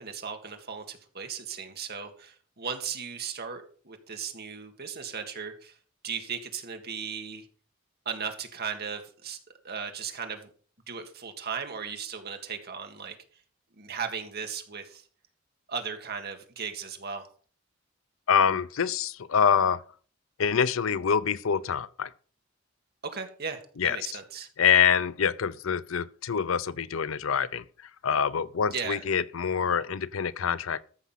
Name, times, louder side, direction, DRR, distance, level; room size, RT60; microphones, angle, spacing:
voice 1, 0.0-5.8 6.0-7.5 8.1-9.4 9.6-10.5 10.9-13.2 13.8-15.1 15.7-17.3 23.0-24.5 28.7-29.0, right 6 dB, 50° right, 1.9 m, -36 dB
voice 2, 18.3-19.8 20.4-22.1 23.8-24.0 24.6-30.8, left 7 dB, 75° left, 0.6 m, -25 dB
14.0 x 6.1 x 5.7 m
head